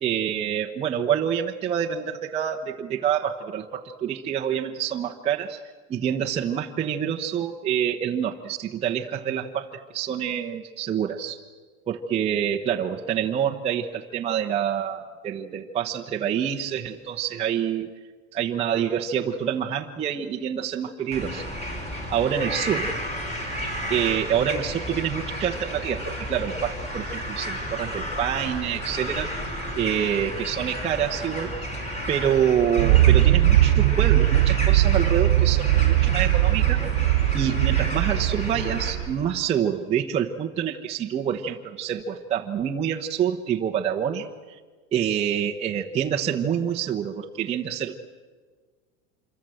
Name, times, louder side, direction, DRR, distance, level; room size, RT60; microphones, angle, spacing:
voice 1, 0.0-5.6 5.9-11.4 11.9-17.9 18.3-21.5 22.1-22.9 23.9-29.3 29.7-31.5 32.1-36.9 37.3-44.3 44.9-48.0, right 9 dB, 15° right, -1 dB, 0.9 m, -27 dB
sound 1, 21.1-38.9, equal, 20° left, 5.2 m, -32 dB
sound 2, 32.8-39.3, right 14 dB, 80° right, 1.1 m, -20 dB
26.5 x 23.5 x 7.8 m, 1.5 s
supercardioid pair, 165°, 36 cm